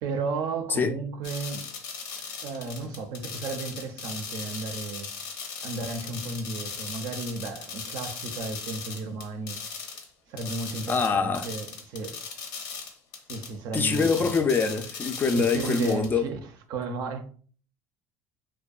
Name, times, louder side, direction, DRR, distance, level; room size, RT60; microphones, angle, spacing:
voice 1, 0.0-1.7 2.4-5.1 5.6-9.6 10.3-12.2 13.3-14.3 15.3-16.4 16.7-17.3, right 3 dB, 65° right, 0.5 m, -34 dB
sound 1, 1.2-10.1 10.4-16.1, left 5 dB, 75° left, 0.6 m, -38 dB
voice 2, 10.9-11.5 13.7-16.3, left 5 dB, 25° left, 0.3 m, -24 dB
2.6 x 2.1 x 2.3 m
supercardioid pair, 95°, 7 cm